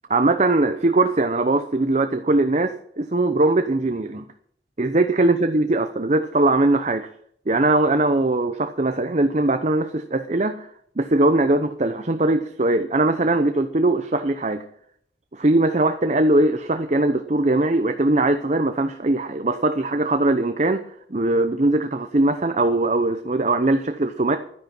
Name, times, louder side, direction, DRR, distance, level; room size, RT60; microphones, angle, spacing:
voice 1, 0.1-4.3 4.8-7.1 7.5-10.7 11.0-14.6 15.3-20.8 21.1-24.4, right 2 dB, 40° right, 8 dB, 0.8 m, -20 dB
12.0 x 10.5 x 6.0 m, 0.65 s
head